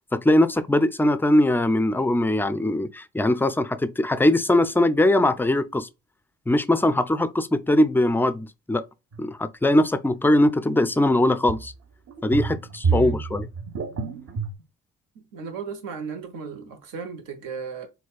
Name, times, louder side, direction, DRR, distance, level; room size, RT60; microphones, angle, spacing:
voice 1, 0.1-5.9 6.5-8.8 9.2-11.7 12.2-13.5, left 1 dB, 5° left, 0.3 m, -21 dB
sound 1, 9.1-9.2 11.5-11.8 12.1-14.5, right 5 dB, 50° right, 0.6 m, -28 dB
voice 2, 12.8-13.2 15.1-17.9, right 4 dB, 80° right, 1.0 m, -35 dB
4.0 x 2.3 x 2.3 m
supercardioid pair, 65°, 32 cm